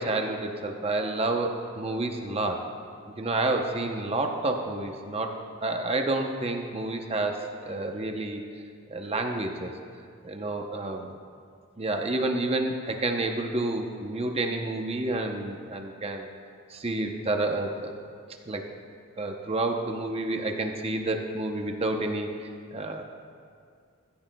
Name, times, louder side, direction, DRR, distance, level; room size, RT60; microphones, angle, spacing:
voice 1, 0.0-2.6 3.0-8.4 8.9-9.7 10.2-11.0 11.8-16.3 16.7-17.9 18.5-18.6 19.2-23.0, right 2 dB, 25° right, 3 dB, 0.7 m, -29 dB
15.5 x 14.5 x 2.2 m, 2.2 s
head